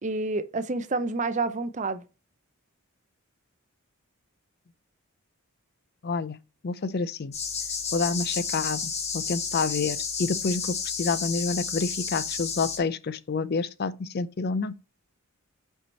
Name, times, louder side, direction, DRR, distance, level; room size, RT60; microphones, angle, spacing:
voice 1, 0.0-2.0, right 3 dB, 35° right, 0.6 m, -28 dB
voice 2, 6.0-6.4 6.6-7.3 7.9-14.7, left 4 dB, 45° left, 0.4 m, -28 dB
sound 1, 7.3-12.8, left 5 dB, 30° left, 1.1 m, -31 dB
5.7 x 4.6 x 4.2 m
head